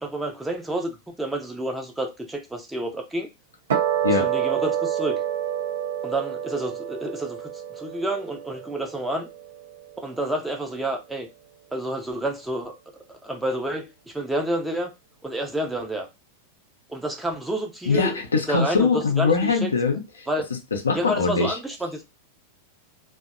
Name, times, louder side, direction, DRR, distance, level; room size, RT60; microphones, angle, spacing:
voice 1, 0.0-3.3 4.2-5.2 6.0-7.5 7.8-9.3 10.0-11.3 11.7-12.7 13.2-14.9 15.2-16.1 16.9-18.2 18.5-19.7 20.3-20.5 20.9-22.0, right 1 dB, 5° right, 0.6 m, -29 dB
sound 1, 3.7-10.2, right 9 dB, 65° right, 0.6 m, -28 dB
voice 2, 17.8-20.3 20.7-21.6, left 4 dB, 75° left, 0.5 m, -22 dB
2.6 x 2.1 x 2.4 m
figure-of-eight pair, 90°, 0 cm